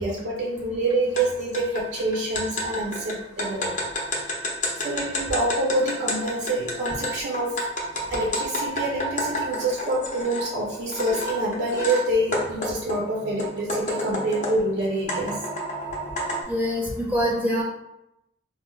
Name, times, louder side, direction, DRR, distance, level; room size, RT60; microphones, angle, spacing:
voice 1, 0.0-3.8 4.8-7.6 8.1-15.4, right 1 dB, 70° right, -2 dB, 0.5 m, -26 dB
sound 1, 1.2-1.3 1.5-10.5 10.9-12.0 12.3-14.7 15.1-16.4, equal, 45° left, 0.6 m, -29 dB
voice 2, 16.5-17.6, equal, 10° right, -4 dB, 0.5 m, -24 dB
4.0 x 2.0 x 2.2 m, 0.86 s
head